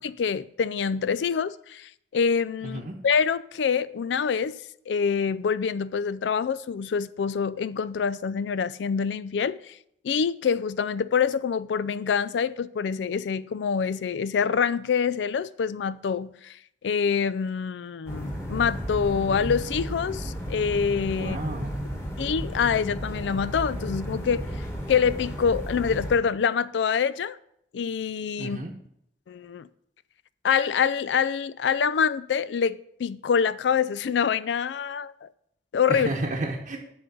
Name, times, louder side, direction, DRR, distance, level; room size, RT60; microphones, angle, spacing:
voice 1, 0.0-4.6 4.9-9.8 10.0-16.6 16.8-21.4 22.2-27.4 27.7-28.6 29.3-29.7 30.4-35.3 35.7-36.1, left 6 dB, 90° left, 0.4 m, -26 dB
voice 2, 2.6-2.9 21.2-21.7 28.4-28.7 35.9-36.8, right 2 dB, 50° right, 0.9 m, -31 dB
sound 1, 18.1-26.2, equal, 15° left, 1.5 m, -33 dB
10.5 x 3.8 x 6.8 m
head